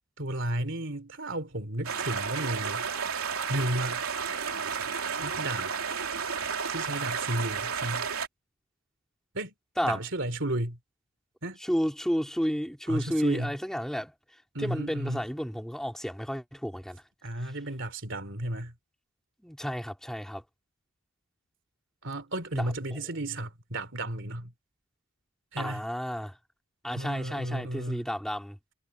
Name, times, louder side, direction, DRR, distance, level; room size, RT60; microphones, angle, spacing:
voice 1, 0.2-2.8 3.5-4.0 5.2-5.7 6.7-8.1 9.3-9.5 9.8-10.8 11.4-11.6 12.9-13.5 14.5-15.2 17.2-18.7 22.0-24.5 25.5-25.8 26.9-28.0, right 1 dB, 55° right, 3.0 m, -33 dB
sound 1, 1.8-8.3, right 6 dB, 75° right, 3.2 m, -32 dB
voice 2, 11.6-14.1 14.6-17.0 19.4-20.4 22.5-23.0 25.6-26.3 26.8-28.6, equal, ahead, 4.0 m, -32 dB
head